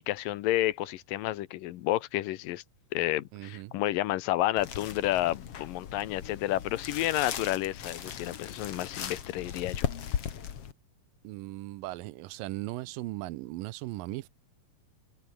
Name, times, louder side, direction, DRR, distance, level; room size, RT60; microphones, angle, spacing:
voice 1, 0.0-2.6 2.9-9.9, left 15 dB, 85° left, 2.6 m, -30 dB
voice 2, 3.3-3.7 11.2-14.3, right 19 dB, 90° right, 2.4 m, -38 dB
sound 1, 4.6-10.7, left 8 dB, 50° left, 2.5 m, -38 dB
omnidirectional pair, 3.9 m